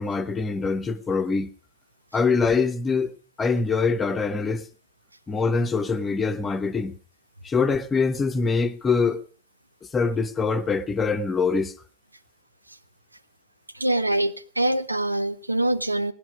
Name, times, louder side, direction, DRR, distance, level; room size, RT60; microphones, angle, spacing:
voice 1, 0.0-1.5 2.1-3.1 3.4-4.7 5.3-6.9 7.4-9.2 9.9-11.7, left 4 dB, 20° left, 1.0 m, -24 dB
voice 2, 13.7-16.1, right 1 dB, 85° right, 0.6 m, -24 dB
17.0 x 11.0 x 5.0 m
figure-of-eight pair, 90°, 0 cm